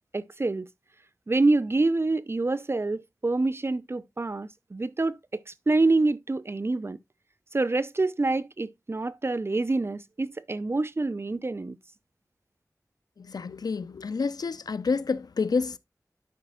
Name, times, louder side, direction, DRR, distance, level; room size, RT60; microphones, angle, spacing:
voice 1, 0.1-0.7 1.3-7.0 7.5-11.8, right 2 dB, 40° right, 0.4 m, -26 dB
voice 2, 13.2-15.8, left 4 dB, 85° left, 0.4 m, -29 dB
12.0 x 5.0 x 2.2 m
wide cardioid pair, 60°, 6 cm